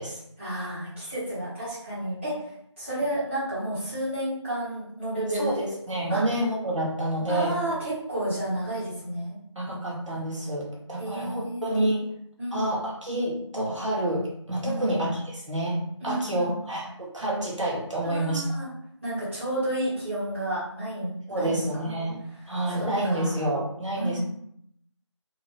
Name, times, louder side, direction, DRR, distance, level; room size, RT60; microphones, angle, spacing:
voice 1, 0.4-2.3 2.8-5.7 6.1-6.2 7.3-9.4 11.0-11.8 12.4-12.7 14.6-15.0 16.0-16.5 18.0-18.7 19.0-21.8 22.7-23.3 23.9-24.2, right 1 dB, 25° right, -12 dB, 1.4 m, -31 dB
voice 2, 5.3-5.6 5.9-7.6 9.5-12.1 12.5-15.8 16.0-18.5 21.3-22.2 22.5-24.2, right 1 dB, 80° right, -4 dB, 1.2 m, -28 dB
2.8 x 2.4 x 3.1 m, 0.70 s
figure-of-eight pair, 170°, 16 cm